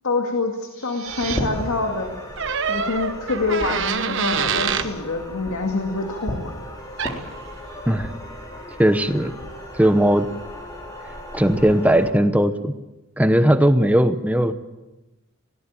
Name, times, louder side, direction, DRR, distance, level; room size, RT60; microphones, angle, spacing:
voice 1, 0.0-2.2 2.7-6.5, left 3 dB, 75° left, 3 dB, 2.2 m, -26 dB
sound 1, 0.6-1.4, right 9 dB, 75° right, 2.3 m, -34 dB
sound 2, 1.0-12.1, equal, 15° left, 3.5 m, -35 dB
sound 3, 2.4-4.9 7.0-7.2, right 6 dB, 60° right, 1.2 m, -25 dB
voice 2, 8.8-9.3 9.8-10.3 11.3-12.7 13.2-14.5, right 1 dB, 5° right, 10 dB, 0.8 m, -18 dB
20.5 x 18.0 x 8.8 m, 1.1 s
head